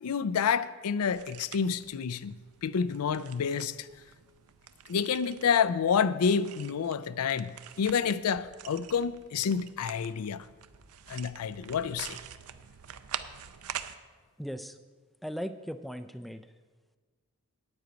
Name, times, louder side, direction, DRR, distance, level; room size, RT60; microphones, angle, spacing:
voice 1, 0.0-3.9 4.9-10.5 11.1-12.2, left 6 dB, 85° left, 0.4 m, -29 dB
sound 1, 1.1-14.0, right 9 dB, 85° right, 0.5 m, -46 dB
voice 2, 14.4-14.8 15.2-16.5, equal, ahead, 0.3 m, -38 dB
9.6 x 8.9 x 5.1 m
head